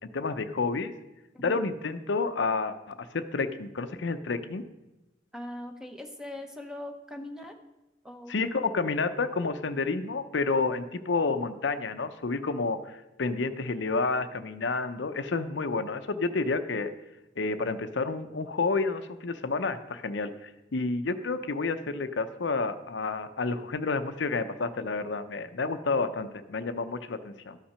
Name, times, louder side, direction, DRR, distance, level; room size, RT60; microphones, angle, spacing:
voice 1, 0.1-0.9 1.4-4.6 8.3-16.9 17.4-27.6, left 3 dB, 70° left, 10 dB, 0.6 m, -30 dB
voice 2, 5.3-7.5 8.0-8.5, left 1 dB, 5° right, 5 dB, 0.8 m, -40 dB
12.5 x 5.8 x 5.5 m, 0.99 s
head